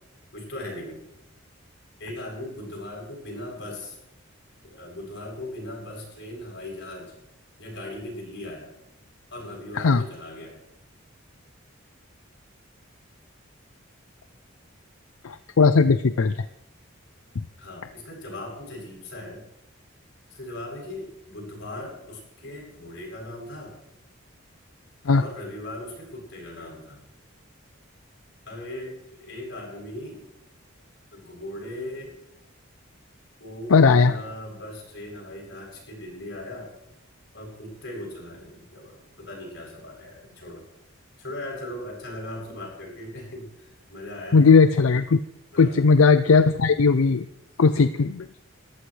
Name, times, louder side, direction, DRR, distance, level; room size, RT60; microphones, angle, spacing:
voice 1, 0.3-1.0 2.0-4.0 4.6-7.1 7.6-8.7 9.3-10.6 17.6-19.4 20.3-23.8 25.1-27.0 28.4-30.2 31.1-32.2 33.4-36.7 37.3-40.7 41.2-44.5 45.5-45.9, left 1 dB, 60° left, -1 dB, 7.9 m, -38 dB
voice 2, 15.2-16.4 25.1-25.2 33.7-34.1 44.3-45.2 45.6-47.3 47.6-48.3, left 4 dB, 85° left, 12 dB, 0.5 m, -18 dB
22.0 x 14.5 x 3.3 m, 0.85 s
head